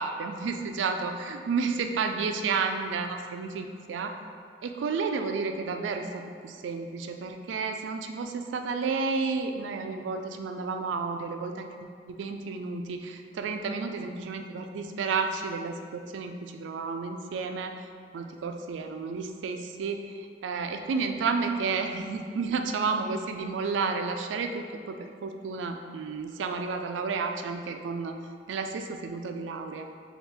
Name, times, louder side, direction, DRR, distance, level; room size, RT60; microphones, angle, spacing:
voice 1, 0.0-4.2 4.6-11.9 12.2-17.8 18.1-28.2 28.5-29.9, right 4 dB, 90° right, 6 dB, 0.3 m, -31 dB
3.4 x 2.4 x 4.4 m, 2.1 s
head